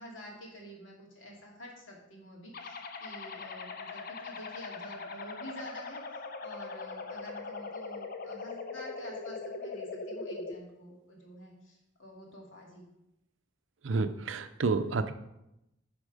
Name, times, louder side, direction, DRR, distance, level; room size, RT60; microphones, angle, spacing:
voice 1, 0.0-12.9, equal, 75° left, -2 dB, 2.6 m, -49 dB
sound 1, 2.5-10.5, left 3 dB, 50° left, 0.7 m, -41 dB
voice 2, 13.8-15.1, right 4 dB, 70° right, 10 dB, 0.6 m, -29 dB
11.0 x 4.3 x 5.0 m, 0.87 s
head